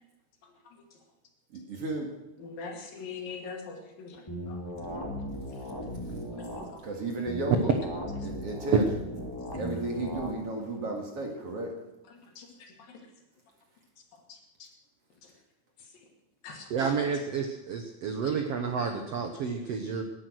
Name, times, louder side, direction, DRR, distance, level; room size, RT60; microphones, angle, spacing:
voice 1, 1.5-2.1 6.8-7.7 8.2-8.9 9.6-11.7, right 2 dB, 45° right, 1 dB, 2.6 m, -34 dB
voice 2, 2.4-4.2 4.5-4.6 6.3-6.4 12.4-12.5 14.6-14.7 16.4-16.9, left 5 dB, 65° left, 1 dB, 4.0 m, -41 dB
sound 1, 4.3-6.7 7.3-10.3, equal, 5° left, 2.6 m, -37 dB
voice 3, 16.7-20.0, right 6 dB, 80° right, 4 dB, 1.4 m, -30 dB
19.5 x 11.0 x 6.4 m, 0.95 s
omnidirectional pair, 4.6 m